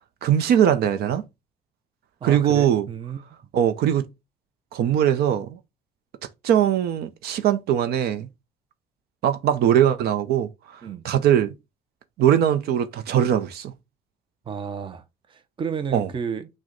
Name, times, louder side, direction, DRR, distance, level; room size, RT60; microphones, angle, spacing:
voice 1, 0.2-1.2 2.2-2.9 3.5-4.1 4.7-5.6 6.4-8.3 9.2-10.5 11.0-11.5 12.2-13.7 15.9-16.1, right 10 dB, 70° right, 0.6 m, -20 dB
voice 2, 2.2-3.2 10.8-11.0 14.5-16.5, right 7 dB, 30° right, 0.6 m, -32 dB
6.1 x 2.2 x 3.8 m
cardioid pair, 110°, 17 cm